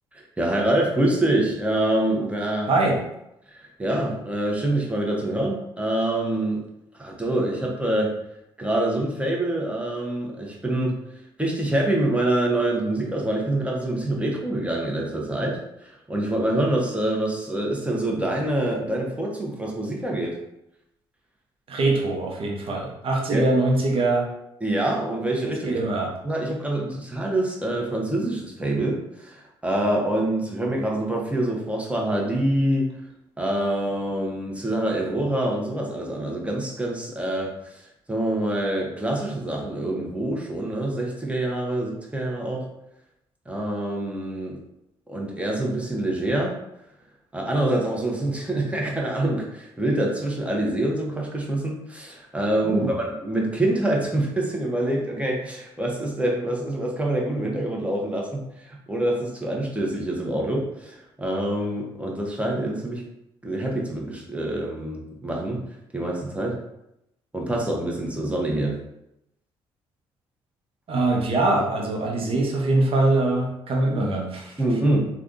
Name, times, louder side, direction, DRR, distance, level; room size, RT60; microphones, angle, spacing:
voice 1, 0.1-2.7 3.5-6.6 7.0-8.1 8.6-11.0 11.4-15.6 15.8-20.4 23.3-23.5 24.6-25.8 26.2-32.9 33.4-37.8 38.1-42.6 43.5-44.6 45.1-46.5 47.3-63.0 63.4-65.6 65.9-66.6 67.3-68.8 74.6-75.1, right 1 dB, 10° right, -2 dB, 1.0 m, -25 dB
voice 2, 21.7-24.3 25.6-26.1 52.6-52.9 70.9-74.6, right 2 dB, 50° right, -1 dB, 0.8 m, -23 dB
3.3 x 2.4 x 2.6 m, 0.84 s
hypercardioid pair, 55°, 12 cm